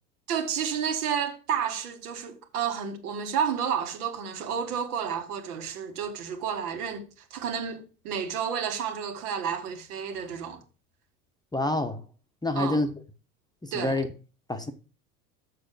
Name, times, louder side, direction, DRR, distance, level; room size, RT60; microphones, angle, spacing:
voice 1, 0.3-10.6 12.6-12.8 13.7-14.0, right 7 dB, 70° right, 2.1 m, -31 dB
voice 2, 11.5-12.0 12.4-12.9 13.6-14.1 14.5-14.7, left 2 dB, 10° left, 0.9 m, -27 dB
6.9 x 6.2 x 5.3 m
hypercardioid pair, 85°, 46 cm